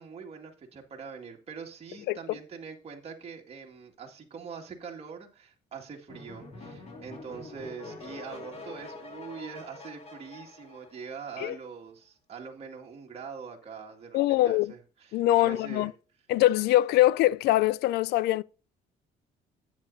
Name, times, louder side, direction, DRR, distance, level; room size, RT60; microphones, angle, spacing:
voice 1, 0.0-15.9, right 6 dB, 35° right, 2.1 m, -43 dB
sound 1, 6.1-11.5, left 2 dB, 40° left, 3.0 m, -45 dB
voice 2, 14.1-14.7 15.1-15.9 16.3-18.4, left 15 dB, 75° left, 0.4 m, -23 dB
10.5 x 8.8 x 2.6 m
cardioid pair, 110°, 17 cm